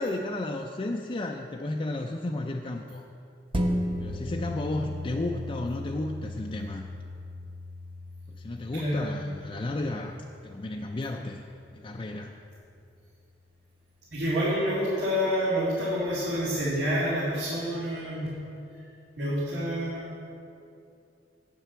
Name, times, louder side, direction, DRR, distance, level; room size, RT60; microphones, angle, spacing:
voice 1, 0.0-3.0 4.0-6.9 8.3-10.2 10.4-11.4 11.7-12.4, left 2 dB, 30° left, 1 dB, 0.4 m, -33 dB
sound 1, 3.5-12.3 12.8-12.9, equal, 30° right, 0.9 m, -36 dB
voice 2, 8.7-9.1 14.1-18.3 19.2-20.1, equal, 80° right, -10 dB, 2.7 m, -28 dB
9.0 x 7.5 x 6.9 m, 2.6 s
head